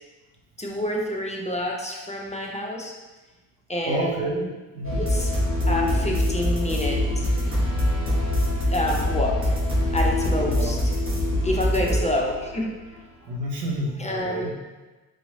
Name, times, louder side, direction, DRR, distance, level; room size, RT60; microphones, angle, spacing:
voice 1, 0.6-2.9 3.7-4.1 5.0-5.3 5.7-7.3 8.7-9.5 9.9-10.8 11.4-12.7 14.0-14.5, left 1 dB, 15° left, -1 dB, 0.7 m, -28 dB
voice 2, 3.8-4.5 4.7-5.0 7.9-8.0 10.4-10.7 11.8-12.2 13.2-14.5, right 1 dB, 80° right, -2 dB, 0.9 m, -29 dB
sound 1, 4.8-13.0, left 1 dB, 25° right, 1.2 m, -24 dB
4.8 x 2.9 x 2.7 m, 1.2 s
hypercardioid pair, 45°, 48 cm